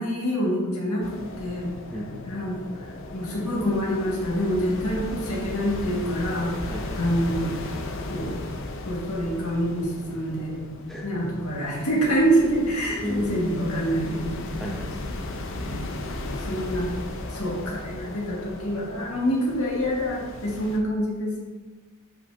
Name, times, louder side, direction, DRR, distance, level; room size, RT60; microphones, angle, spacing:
voice 1, 0.0-1.7 2.3-2.9 3.1-7.5 8.1-8.3 8.8-10.6 11.0-14.6 15.6-15.9 16.4-16.9 17.3-21.4, equal, 75° left, -4 dB, 2.0 m, -26 dB
sound 1, 1.0-20.8, left 2 dB, 60° left, 0.7 m, -36 dB
voice 2, 6.7-7.0 10.9-11.4 13.0-13.3 14.6-15.2, left 1 dB, ahead, -2 dB, 0.7 m, -35 dB
7.7 x 5.7 x 2.7 m, 1.3 s
head